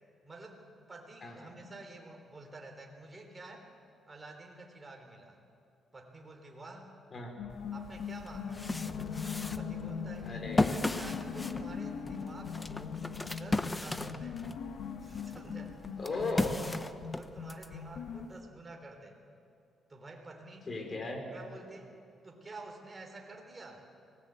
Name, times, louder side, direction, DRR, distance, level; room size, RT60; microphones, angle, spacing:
voice 1, 0.2-3.7 4.1-5.4 5.9-6.9 7.7-8.7 9.4-10.4 10.7-14.4 15.0-15.8 17.1-19.2 19.9-20.7 21.3-22.0 22.2-23.8, right 2 dB, 20° right, 2 dB, 3.7 m, -49 dB
voice 2, 1.2-1.6 7.1-7.3 10.2-10.7 16.0-16.6 20.7-21.2, left 3 dB, 35° left, 4 dB, 4.5 m, -37 dB
sound 1, 7.4-18.3, left 6 dB, 80° left, 1.8 m, -40 dB
sound 2, 7.7-7.8 8.3-14.6 15.1-17.7, left 2 dB, 15° left, 0.9 m, -35 dB
25.0 x 18.5 x 8.2 m, 2.5 s
cardioid pair, 105°, 0 cm